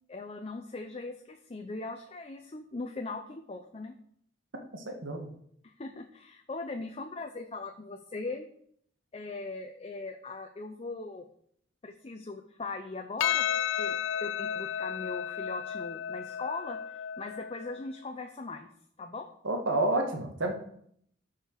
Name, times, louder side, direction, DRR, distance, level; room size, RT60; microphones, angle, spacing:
voice 1, 0.1-3.9 5.6-8.5 9.1-11.2 11.8-18.7 19.0-19.3, left 3 dB, 35° left, 5 dB, 0.6 m, -40 dB
voice 2, 4.7-5.3 19.4-20.5, right 2 dB, 85° right, 3 dB, 1.7 m, -29 dB
Percussion, 13.2-17.8, left 9 dB, 80° left, 0.3 m, -33 dB
13.0 x 4.9 x 4.6 m, 0.67 s
head